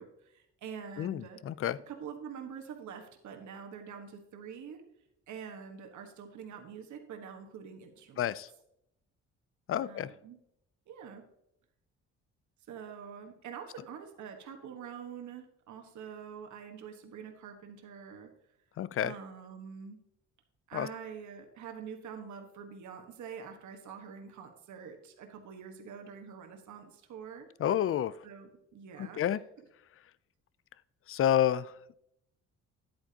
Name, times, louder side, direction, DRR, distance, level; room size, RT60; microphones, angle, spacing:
voice 1, 0.0-1.4 1.9-4.8 5.3-8.3 9.8-10.4 10.9-11.2 12.7-18.3 19.0-20.0 20.7-27.5 28.2-29.4, right 7 dB, 70° right, 4 dB, 1.4 m, -45 dB
voice 2, 1.0-1.8 8.2-8.5 9.7-10.1 18.8-19.1 20.7-20.9 27.6-28.1 29.0-29.4 31.1-31.9, left 10 dB, 45° left, 18 dB, 0.5 m, -29 dB
10.5 x 8.8 x 2.9 m, 0.77 s
cardioid pair, 90°, 30 cm